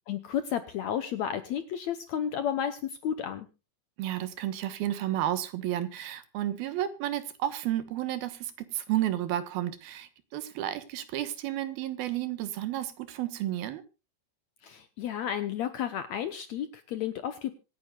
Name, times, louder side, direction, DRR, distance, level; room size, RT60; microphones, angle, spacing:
voice 1, 0.1-3.5 14.6-17.5, left 9 dB, 70° left, 1.7 m, -32 dB
voice 2, 4.0-13.8, right 12 dB, 85° right, 3.1 m, -32 dB
25.5 x 9.6 x 2.4 m
omnidirectional pair, 4.2 m